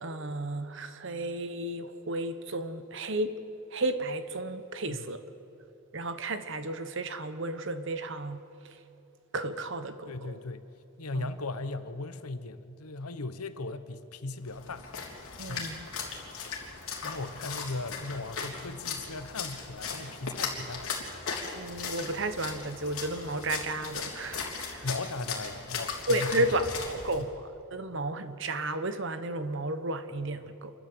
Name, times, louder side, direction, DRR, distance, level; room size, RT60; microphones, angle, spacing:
voice 1, 0.0-3.4 3.7-5.2 5.9-8.4 9.3-10.4 11.1-11.3 15.4-15.8 21.5-24.9 26.1-27.4 27.7-30.7, right 1 dB, 55° right, 10 dB, 1.1 m, -33 dB
voice 2, 10.1-10.6 11.0-14.8 15.5-15.7 17.0-20.9 24.8-26.5 27.2-27.3, left 2 dB, 90° left, 11 dB, 1.1 m, -37 dB
Splash splatter, 14.5-27.2, left 5 dB, 70° left, 3.4 m, -38 dB
27.5 x 13.0 x 7.9 m, 2.7 s
head